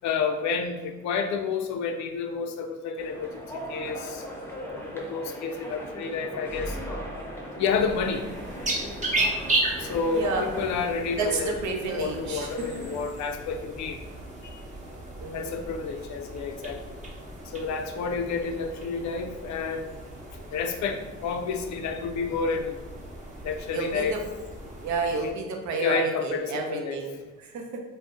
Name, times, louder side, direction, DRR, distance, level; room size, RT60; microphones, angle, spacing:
voice 1, 0.0-3.4 3.7-4.2 4.9-6.8 7.6-8.3 9.8-11.5 11.9-14.0 15.3-17.0 17.5-20.0 20.5-22.8 23.4-24.2 25.2-25.3 25.8-27.0, left 5 dB, 70° left, 6 dB, 0.4 m, -30 dB
sound 1, 3.0-13.1, equal, 5° left, 0.6 m, -39 dB
sound 2, 7.6-25.3, right 2 dB, 25° right, 0.8 m, -35 dB
voice 2, 10.1-10.6 11.2-12.7 15.2-15.5 23.7-24.2 24.8-27.8, right 3 dB, 70° right, 2 dB, 0.7 m, -30 dB
2.6 x 2.1 x 3.6 m, 1.2 s
cardioid pair, 90°, 30 cm